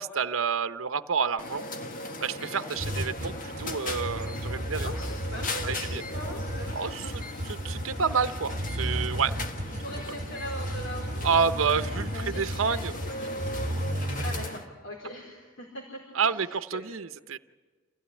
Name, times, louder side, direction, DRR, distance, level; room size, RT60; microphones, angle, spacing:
voice 1, 0.0-1.6 2.2-4.9 5.6-6.0 6.7-9.3 11.2-12.9 16.1-17.4, right 6 dB, 85° right, 11 dB, 0.8 m, -29 dB
sound 1, 1.4-14.7, left 2 dB, 40° left, 1.6 m, -38 dB
sound 2, 2.8-14.5, equal, 40° right, 1.3 m, -34 dB
voice 2, 4.8-7.3 9.2-9.4 9.8-11.9 12.2-13.4 13.7-16.8, equal, 65° left, 0 dB, 4.6 m, -41 dB
28.0 x 16.0 x 10.0 m, 1.4 s
head